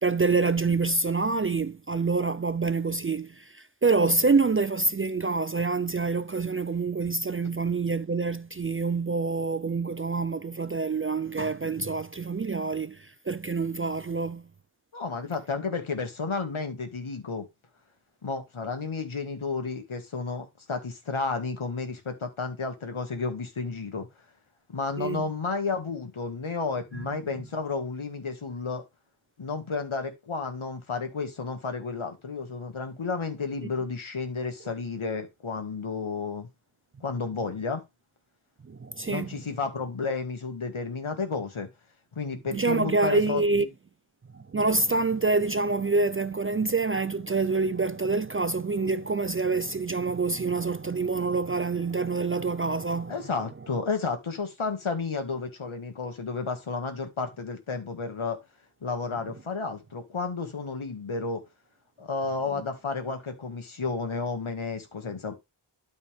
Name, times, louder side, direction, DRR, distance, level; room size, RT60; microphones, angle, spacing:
voice 1, 0.0-14.4 25.0-25.2 26.9-27.1 38.6-39.4 42.5-43.7 44.3-53.3, right 3 dB, 30° right, 0.3 m, -26 dB
voice 2, 14.9-17.5 18.2-24.1 24.7-28.8 29.4-36.5 37.0-37.8 39.1-41.7 42.2-43.7 53.1-58.4 58.8-61.4 62.0-65.3, left 4 dB, 75° left, 2.1 m, -32 dB
12.5 x 4.2 x 3.5 m
wide cardioid pair, 90°, 49 cm